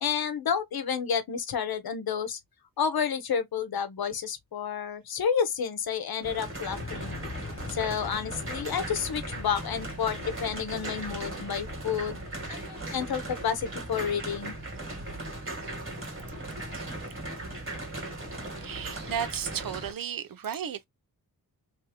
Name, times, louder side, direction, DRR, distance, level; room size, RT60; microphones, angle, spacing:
voice 1, 0.0-2.4 2.8-7.2 7.7-12.2 12.5-14.5, left 7 dB, 80° left, 0.9 m, -30 dB
sound 1, 6.2-19.9, right 2 dB, 35° right, 2.0 m, -38 dB
sound 2, 6.7-12.5, left 4 dB, 30° left, 0.8 m, -43 dB
voice 2, 18.6-20.9, right 8 dB, 65° right, 0.7 m, -34 dB
3.2 x 2.8 x 3.3 m
wide cardioid pair, 110°, 36 cm